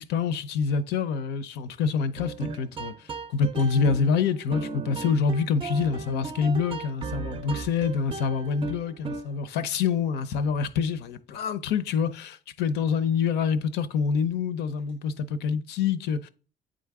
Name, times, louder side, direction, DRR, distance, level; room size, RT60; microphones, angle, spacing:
voice 1, 0.0-3.0 3.3-16.3, left 6 dB, 80° left, 0.6 m, -26 dB
sound 1, 2.2-9.5, right 4 dB, 30° right, 0.5 m, -36 dB
8.8 x 3.8 x 3.5 m
cardioid pair, 110°, 17 cm